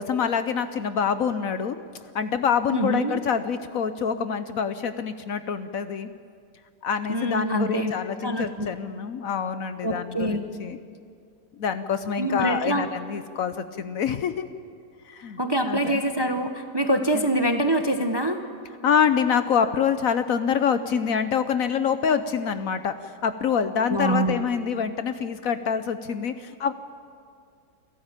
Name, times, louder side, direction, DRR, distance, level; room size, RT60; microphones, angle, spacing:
voice 1, 0.0-1.8 2.1-6.1 6.8-10.8 11.6-14.5 15.1-15.4 15.6-16.0 17.1-17.2 18.8-26.7, left 7 dB, 60° left, 11 dB, 1.1 m, -26 dB
voice 2, 2.7-3.2 7.1-7.9 8.2-8.8 9.8-10.4 12.2-12.9 15.4-18.4 23.9-24.4, right 1 dB, 20° right, 6 dB, 0.8 m, -25 dB
28.5 x 12.5 x 8.9 m, 2.3 s
omnidirectional pair, 1.8 m